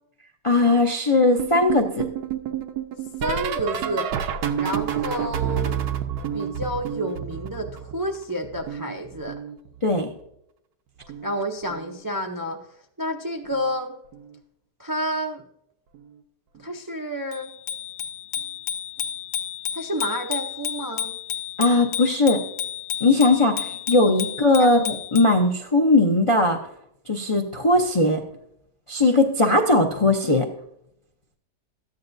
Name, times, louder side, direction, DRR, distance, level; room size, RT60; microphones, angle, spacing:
voice 1, 0.4-2.1 9.8-10.1 21.6-22.4 23.0-26.6 27.1-28.2 28.9-30.5, left 2 dB, 35° left, 2 dB, 0.5 m, -19 dB
sound 1, 1.4-8.2 8.4-10.0 11.0-11.4 11.6-12.0 13.5-13.8 14.1-14.4 15.9-16.0, right 9 dB, 75° right, 1.3 m, -29 dB
voice 2, 3.2-4.1 4.6-5.7 6.3-9.4 11.2-12.6 13.0-13.9 14.8-15.4 16.5-17.5 19.7-21.2 24.1-24.2 24.6-24.8, equal, 30° right, 2 dB, 0.4 m, -29 dB
Bicycle bell, 17.3-25.4, left 10 dB, 80° left, 1.3 m, -32 dB
13.5 x 9.5 x 2.6 m, 0.74 s
omnidirectional pair, 1.8 m